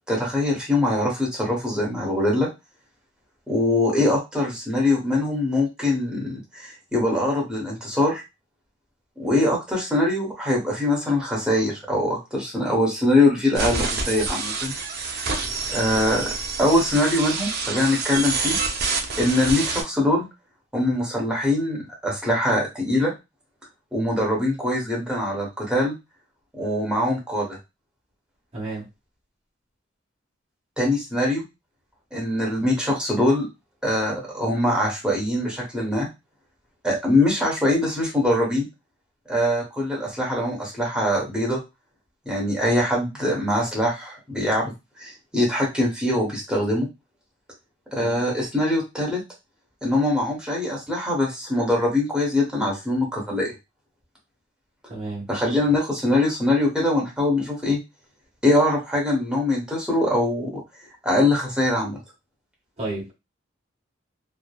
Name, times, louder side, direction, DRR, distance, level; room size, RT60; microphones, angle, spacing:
voice 1, 0.1-2.5 3.5-8.2 9.2-14.7 15.7-16.3 16.6-18.6 19.2-20.3 20.7-23.1 23.9-26.0 26.5-27.6 30.8-31.4 32.1-33.5 33.8-36.1 36.8-38.7 39.3-41.6 42.2-44.7 45.0-46.9 47.9-49.2 49.8-53.5 55.3-57.8 58.4-60.6 61.0-62.0, left 1 dB, 5° right, -3 dB, 0.9 m, -23 dB
sound 1, 13.5-19.8, right 4 dB, 55° right, 0.6 m, -27 dB
voice 2, 28.5-28.9 48.0-48.2 54.9-55.3 62.8-63.1, right 2 dB, 35° right, -6 dB, 1.2 m, -32 dB
3.2 x 2.0 x 2.3 m, 0.24 s
head